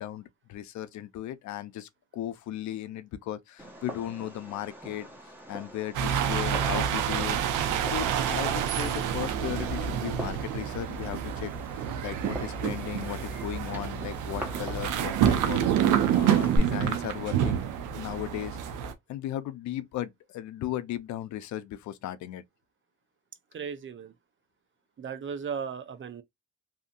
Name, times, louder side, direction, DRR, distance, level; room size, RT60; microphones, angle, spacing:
voice 1, 0.0-5.1 5.5-7.4 7.8-11.5 12.0-15.6 16.1-17.6 18.0-18.6 19.1-22.4, left 12 dB, 70° left, 0.5 m, -36 dB
Fireworks, 3.6-16.6, equal, 5° right, 1.1 m, -42 dB
sound 1, 5.9-18.9, right 9 dB, 85° right, 0.6 m, -28 dB
voice 2, 23.5-24.1 25.0-26.2, right 6 dB, 40° right, 0.6 m, -36 dB
2.7 x 2.6 x 2.5 m
cardioid pair, 90°, 30 cm